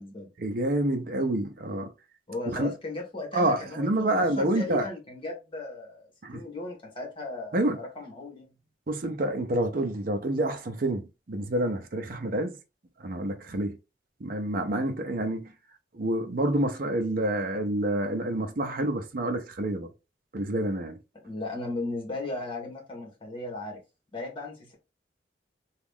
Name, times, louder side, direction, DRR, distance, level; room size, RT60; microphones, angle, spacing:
voice 1, 0.4-1.9 2.5-2.7 3.3-4.9 6.2-6.4 7.5-7.8 8.9-11.0 11.3-12.6 13.0-13.8 14.2-15.5 15.9-19.9 20.3-21.0, right 1 dB, 55° right, 0.6 m, -28 dB
voice 2, 2.3-8.5 21.2-23.8 24.1-24.7, left 2 dB, 30° left, 1.4 m, -36 dB
2.9 x 2.4 x 3.6 m
head